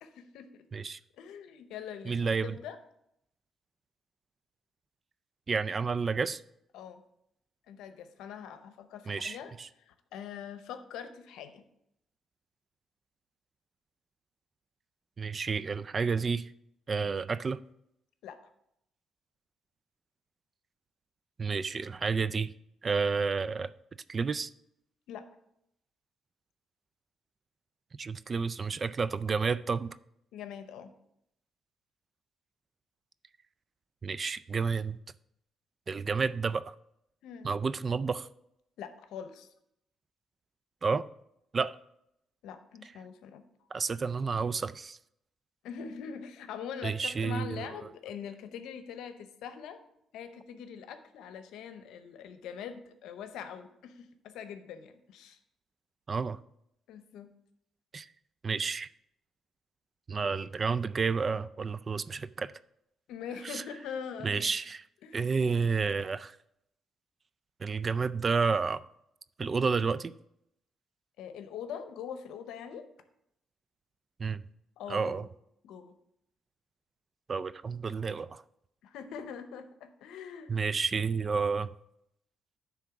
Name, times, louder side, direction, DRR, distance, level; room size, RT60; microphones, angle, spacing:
voice 1, 0.0-0.7 1.2-2.8 6.7-7.0 7.7-11.6 18.2-18.4 25.1-25.2 30.3-30.9 37.2-37.5 38.8-39.5 42.4-43.4 45.6-49.8 50.1-55.4 56.9-57.3 63.1-64.5 65.0-65.3 71.2-72.9 74.8-75.3 75.6-75.9 78.8-80.5, left 7 dB, 85° left, 0.7 m, -43 dB
voice 2, 2.1-2.6 5.5-6.4 9.1-9.7 15.2-16.5 16.9-17.6 21.4-22.5 22.8-23.7 24.1-24.5 28.0-29.9 34.0-35.0 35.9-36.7 37.4-38.3 40.8-41.1 41.5-41.8 43.7-45.0 46.8-47.8 56.1-56.4 57.9-58.1 58.4-58.9 60.1-62.5 63.4-63.6 64.2-64.8 65.1-66.4 67.6-68.8 69.4-70.1 74.2-74.4 74.9-75.3 77.3-78.4 80.5-81.7, right 5 dB, 40° right, 0.3 m, -30 dB
9.9 x 3.6 x 5.9 m
cardioid pair, 90°, 0 cm